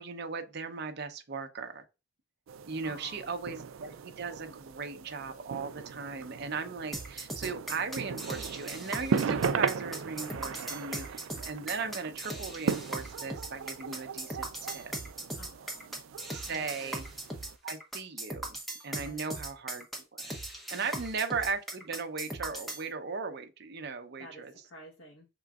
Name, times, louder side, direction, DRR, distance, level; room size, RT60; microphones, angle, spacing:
voice 1, 0.0-1.8 2.7-14.9 16.3-17.0 17.6-18.6 18.8-19.9 20.1-20.3 20.7-24.5, right 4 dB, 55° right, 0.7 m, -37 dB
sound 1, 2.5-17.6, right 6 dB, 85° right, 0.4 m, -37 dB
voice 2, 2.8-3.5 10.3-11.1 15.3-16.1 16.4-16.9 19.0-19.4 20.8-21.1 24.2-25.3, equal, 85° left, 1.1 m, -52 dB
sound 2, 6.9-22.8, right 1 dB, ahead, 1.0 m, -39 dB
5.9 x 3.8 x 2.4 m
head